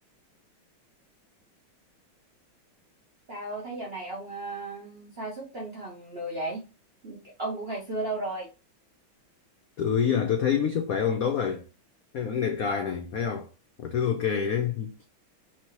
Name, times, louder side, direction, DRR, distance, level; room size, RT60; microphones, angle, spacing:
voice 1, 3.3-6.6 7.0-8.5, right 2 dB, 50° right, 0.7 m, -35 dB
voice 2, 9.8-11.7 12.1-13.5 13.8-15.1, left 7 dB, 75° left, 0.8 m, -27 dB
4.5 x 2.8 x 3.0 m
omnidirectional pair, 2.2 m